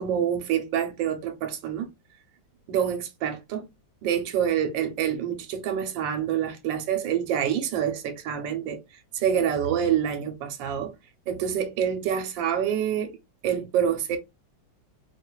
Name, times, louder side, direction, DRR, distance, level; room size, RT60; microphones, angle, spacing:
voice 1, 0.0-1.9 2.7-3.7 4.0-8.8 9.1-10.9 11.3-13.1 13.4-14.2, right 9 dB, 80° right, 1.5 m, -26 dB
4.5 x 2.5 x 2.2 m
omnidirectional pair, 2.0 m